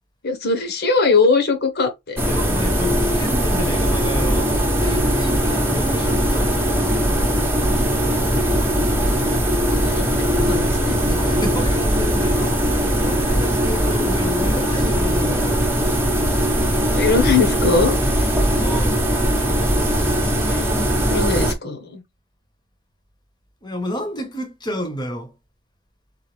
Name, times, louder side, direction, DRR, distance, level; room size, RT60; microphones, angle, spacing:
voice 1, 0.2-2.2 9.7-10.1 10.4-11.0 16.9-18.3 20.4-20.7 21.1-22.0, left 4 dB, 50° left, 1.3 m, -21 dB
voice 2, 2.2-7.0 11.0-15.6 18.5-19.0 23.6-25.3, equal, 20° left, 1.2 m, -31 dB
sound 1, 2.2-21.5, equal, 10° right, 1.1 m, -20 dB
4.0 x 3.9 x 3.4 m
head